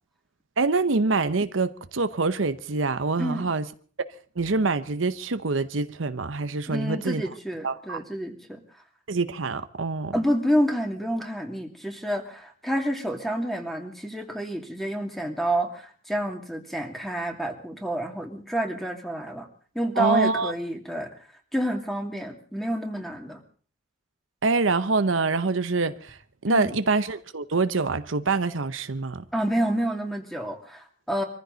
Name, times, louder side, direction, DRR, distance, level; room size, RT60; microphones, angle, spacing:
voice 1, 0.6-3.6 4.4-7.2 7.6-8.0 9.1-10.1 20.0-20.5 24.4-26.2 26.4-29.2, right 3 dB, 90° right, 0.9 m, -25 dB
voice 2, 6.7-8.6 10.1-19.5 19.7-21.1 21.5-23.4 26.5-26.8 29.3-31.2, equal, ahead, 2.6 m, -28 dB
24.5 x 14.5 x 4.0 m
head